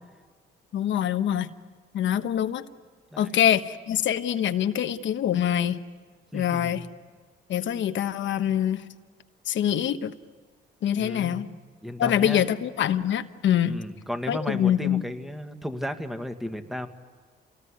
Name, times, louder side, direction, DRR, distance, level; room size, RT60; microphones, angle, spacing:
voice 1, 0.7-1.5 1.9-2.6 3.2-5.8 6.3-6.9 7.5-8.8 9.5-10.1 10.8-11.5 12.0-13.8 14.3-15.0, left 10 dB, 70° left, 9 dB, 1.2 m, -24 dB
voice 2, 6.3-6.9 11.0-12.5 13.6-16.9, equal, ahead, 7 dB, 2.0 m, -34 dB
28.0 x 19.5 x 9.9 m, 1.5 s
cardioid pair, 90°, 20 cm